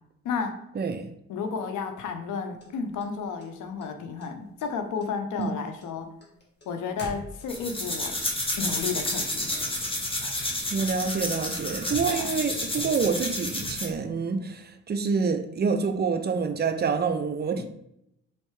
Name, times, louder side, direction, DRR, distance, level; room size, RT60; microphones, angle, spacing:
voice 1, 0.2-0.6 1.3-6.1 6.7-8.2 8.6-9.5 10.2-10.5 12.0-12.3 17.6-17.7, left 5 dB, 80° left, 6 dB, 0.7 m, -32 dB
voice 2, 0.8-1.1 5.4-5.5 10.7-17.6, right 5 dB, 35° right, 8 dB, 0.5 m, -27 dB
sound 1, 2.6-3.9 4.2-4.7 5.0-7.8, left 1 dB, 35° left, 1.5 m, -43 dB
sound 2, 7.5-14.0, left 1 dB, 20° left, 1.0 m, -30 dB
4.3 x 3.2 x 3.1 m, 0.78 s
cardioid pair, 90°, 30 cm